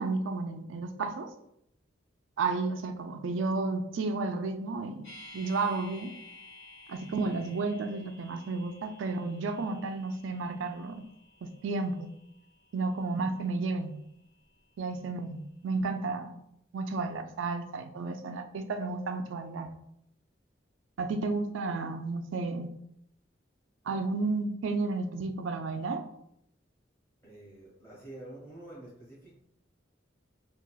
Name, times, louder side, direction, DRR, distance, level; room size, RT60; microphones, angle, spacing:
voice 1, 0.0-1.3 2.4-6.1 6.9-11.0 11.4-12.1 12.7-14.0 14.8-16.4 16.7-19.7 21.0-22.7 23.9-26.0, right 3 dB, 85° right, 7 dB, 0.4 m, -32 dB
sound 1, 5.0-15.1 15.4-15.5, left 1 dB, 85° left, 1.1 m, -54 dB
voice 2, 27.2-29.4, right 1 dB, 15° left, -7 dB, 1.4 m, -47 dB
3.8 x 2.4 x 2.3 m, 0.74 s
head